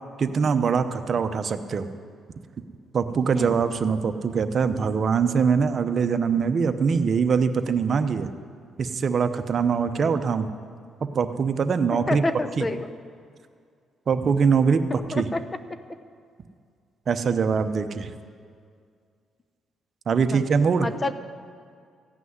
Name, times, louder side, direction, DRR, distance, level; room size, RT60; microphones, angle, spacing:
voice 1, 0.2-1.9 2.9-8.3 8.8-10.5 11.1-12.2 12.6-12.7 14.1-15.3 17.1-18.1 20.1-20.9, right 6 dB, 50° right, 9 dB, 0.8 m, -23 dB
voice 2, 12.1-12.9 15.1-15.4 20.3-20.4 20.8-21.1, left 2 dB, 25° left, 11 dB, 0.8 m, -28 dB
14.5 x 6.1 x 9.4 m, 2.2 s
cardioid pair, 90°, 0 cm